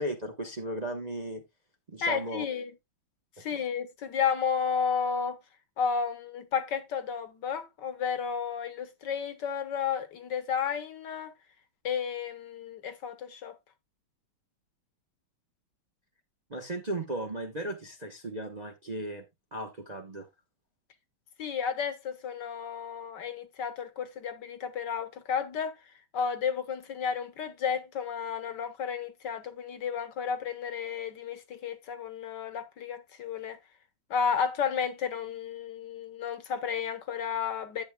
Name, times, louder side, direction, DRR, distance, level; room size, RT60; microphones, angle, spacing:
voice 1, 0.0-1.4 1.9-2.4 3.5-3.6 16.5-19.2 19.5-20.3, right 1 dB, 30° right, 0.8 m, -36 dB
voice 2, 2.0-2.7 3.4-5.4 5.8-11.3 11.8-13.6 21.4-33.6 34.1-37.8, left 6 dB, 65° left, 1.7 m, -32 dB
11.5 x 8.1 x 2.2 m
omnidirectional pair, 2.2 m